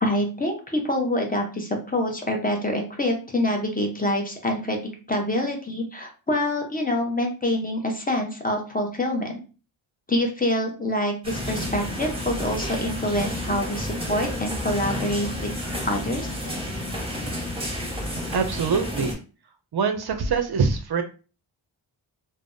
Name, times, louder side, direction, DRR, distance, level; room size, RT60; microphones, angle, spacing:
voice 1, 0.0-4.8 5.1-9.3 10.1-15.5 15.8-16.4, left 1 dB, 20° left, 2 dB, 0.7 m, -26 dB
sound 1, 11.2-19.1, left 1 dB, 10° right, 1.1 m, -31 dB
voice 2, 18.3-19.2 19.7-21.0, right 5 dB, 55° right, 7 dB, 0.5 m, -24 dB
3.3 x 2.0 x 2.6 m, 0.35 s
wide cardioid pair, 80°, 48 cm